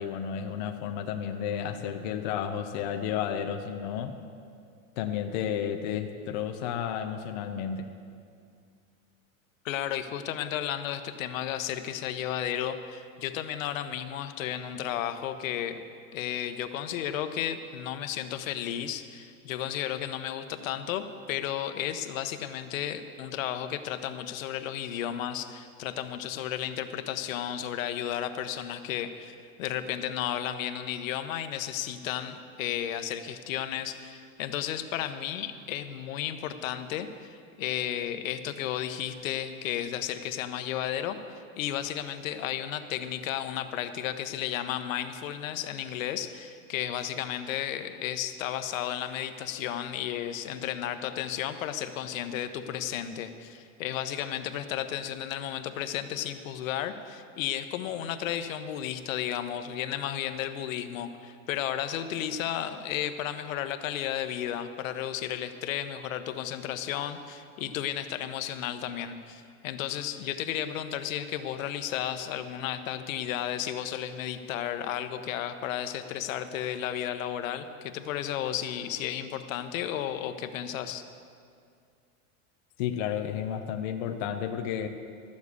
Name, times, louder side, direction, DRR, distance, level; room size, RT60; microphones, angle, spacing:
voice 1, 0.0-4.2 5.0-7.9 82.8-84.9, left 8 dB, 35° left, 5 dB, 0.4 m, -32 dB
voice 2, 9.6-15.8 16.1-81.0, left 10 dB, 65° left, 10 dB, 0.9 m, -33 dB
13.0 x 7.4 x 8.1 m, 2.3 s
supercardioid pair, 170°, 42 cm